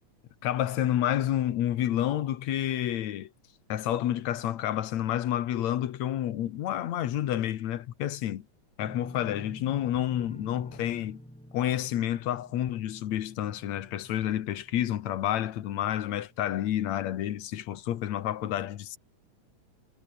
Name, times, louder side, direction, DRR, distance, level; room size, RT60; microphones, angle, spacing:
voice 1, 0.4-3.3 3.7-8.4 8.8-11.2 11.5-19.0, left 12 dB, 65° left, 2.4 m, -29 dB
sound 1, 8.8-15.7 16.0-16.5 16.9-17.0, equal, ahead, 3.6 m, -48 dB
omnidirectional pair, 3.6 m